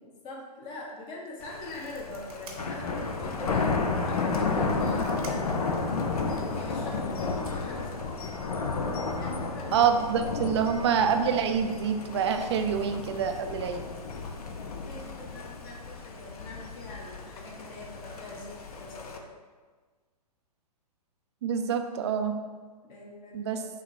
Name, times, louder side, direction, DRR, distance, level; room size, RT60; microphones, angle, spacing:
voice 1, 0.0-5.9 6.4-8.2 9.0-9.9 10.4-10.7 14.3-19.2 22.8-23.6, left 2 dB, 25° left, -1 dB, 0.8 m, -43 dB
sound 1, 0.9-1.1 1.4-3.2 3.6-3.7 4.4-5.7 6.8-6.9 7.4-8.5, right 4 dB, 60° right, 0.9 m, -50 dB
Thunder, 1.4-19.2, left 4 dB, 65° left, 0.6 m, -32 dB
voice 2, 9.7-13.8 21.4-22.3 23.3-23.6, right 7 dB, 40° right, 7 dB, 0.4 m, -26 dB
6.0 x 2.2 x 4.0 m, 1.4 s
figure-of-eight pair, 115°, 21 cm